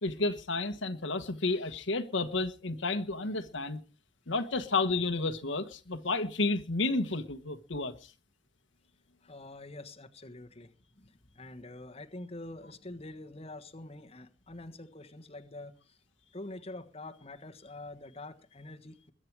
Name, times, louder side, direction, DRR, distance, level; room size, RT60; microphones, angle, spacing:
voice 1, 0.0-3.8 4.3-7.9, left 3 dB, 80° left, 1.4 m, -31 dB
voice 2, 9.2-16.0 16.3-19.1, left 2 dB, 35° left, 1.4 m, -46 dB
22.0 x 8.9 x 4.8 m
head